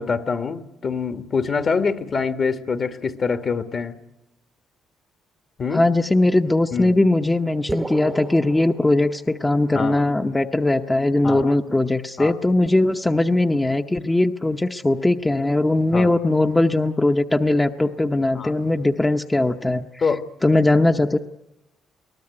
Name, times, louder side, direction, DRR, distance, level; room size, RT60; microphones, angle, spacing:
voice 1, 0.0-4.0 5.6-5.9 6.7-7.0 9.7-10.0 11.2-11.5 12.2-12.3 15.9-16.1 18.3-18.5 20.0-20.2, left 5 dB, 45° left, 1.5 m, -25 dB
voice 2, 5.7-19.9 20.4-21.2, left 2 dB, 15° left, 0.9 m, -20 dB
sound 1, 7.7-9.6, right 2 dB, 15° right, 0.9 m, -32 dB
22.5 x 19.0 x 9.7 m
cardioid pair, 80°, 0 cm